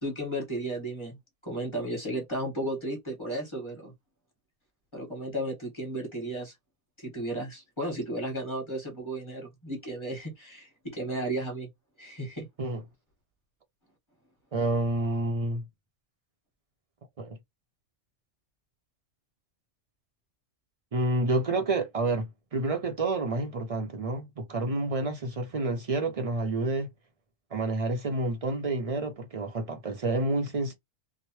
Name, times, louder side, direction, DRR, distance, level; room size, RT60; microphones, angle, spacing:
voice 1, 0.0-3.9 4.9-6.5 7.0-11.7 12.0-12.5, right 1 dB, 20° left, 1.4 m, -34 dB
voice 2, 14.5-15.6 17.2-17.4 20.9-26.9 27.5-30.7, right 2 dB, 55° right, 0.4 m, -29 dB
2.9 x 2.1 x 3.0 m
omnidirectional pair, 1.4 m